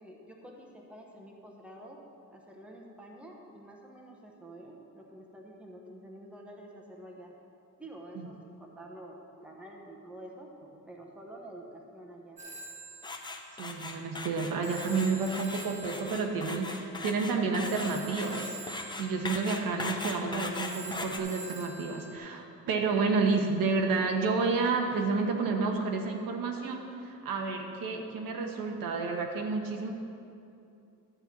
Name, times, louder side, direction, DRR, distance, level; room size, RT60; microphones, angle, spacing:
voice 1, 0.0-2.0 2.3-7.4 7.8-10.5 10.9-12.4, right 1 dB, 5° right, -1 dB, 1.0 m, -48 dB
Telephone, 12.4-22.2, right 2 dB, 20° right, 1.2 m, -46 dB
sound 1, 13.0-21.2, left 3 dB, 15° left, 0.6 m, -39 dB
voice 2, 13.6-18.6 19.0-29.9, right 4 dB, 85° right, 2 dB, 1.2 m, -30 dB
12.0 x 4.5 x 8.2 m, 2.6 s
cardioid pair, 170°, 33 cm